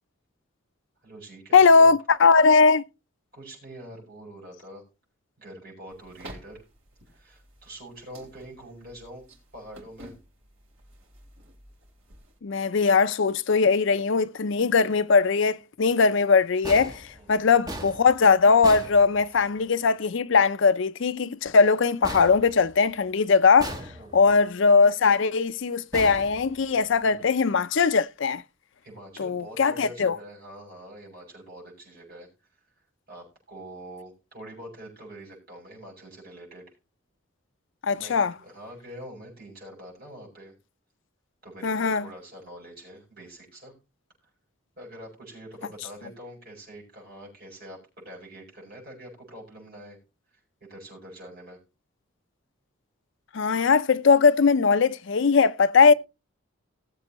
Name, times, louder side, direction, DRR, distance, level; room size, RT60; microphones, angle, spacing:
voice 1, 1.0-1.9 3.3-4.8 5.4-6.6 7.1-9.2 9.5-10.1 17.1-17.5 23.9-24.3 27.0-27.2 28.8-32.3 33.1-36.6 37.9-40.5 41.4-43.7 44.8-50.0 50.6-51.6 55.8-55.9, right 1 dB, 45° right, 6.8 m, -45 dB
voice 2, 1.5-2.8 12.4-23.8 24.1-28.4 29.2-30.2 37.8-38.3 41.6-42.1 53.3-55.9, left 5 dB, 60° left, 0.5 m, -20 dB
sound 1, 5.9-12.4, right 1 dB, 70° right, 3.9 m, -50 dB
sound 2, 16.6-19.7 22.0-23.1 23.6-24.4 25.9-27.0, right 1 dB, 20° right, 1.2 m, -39 dB
19.5 x 7.6 x 3.0 m
head